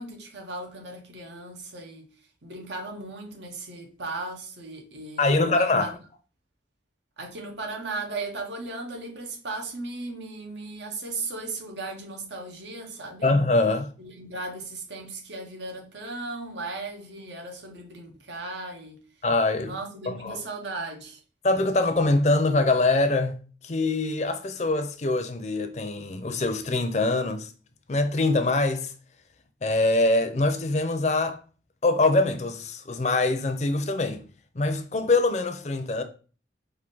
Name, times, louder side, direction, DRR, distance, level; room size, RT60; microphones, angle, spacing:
voice 1, 0.0-2.1 2.4-6.0 7.2-13.3 14.0-19.0 19.6-21.2, right 3 dB, 85° right, 1.2 m, -36 dB
voice 2, 5.2-5.9 13.2-13.9 19.2-19.7 20.1-20.4 21.4-23.4 23.6-27.5 27.9-28.9 29.6-31.4 31.8-34.2 34.5-36.0, left 2 dB, 40° left, 0.5 m, -24 dB
4.7 x 2.7 x 3.8 m
head